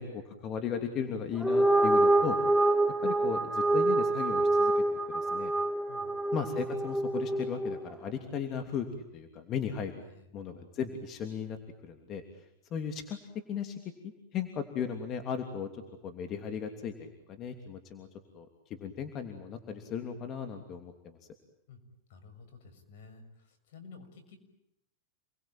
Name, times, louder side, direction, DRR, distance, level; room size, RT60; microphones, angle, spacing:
voice 1, 0.0-2.7 3.0-5.5 6.3-8.9 9.1-10.0 10.3-11.6 11.8-12.4 12.7-13.2 13.5-13.8 14.3-18.1 18.3-21.2, left 7 dB, 35° left, 6 dB, 3.0 m, -36 dB
sound 1, 1.3-7.9, right 2 dB, ahead, 1.5 m, -26 dB
voice 2, 22.1-24.4, left 4 dB, 70° left, 8 dB, 6.5 m, -52 dB
29.0 x 21.0 x 9.0 m, 0.77 s
supercardioid pair, 125°, 0 cm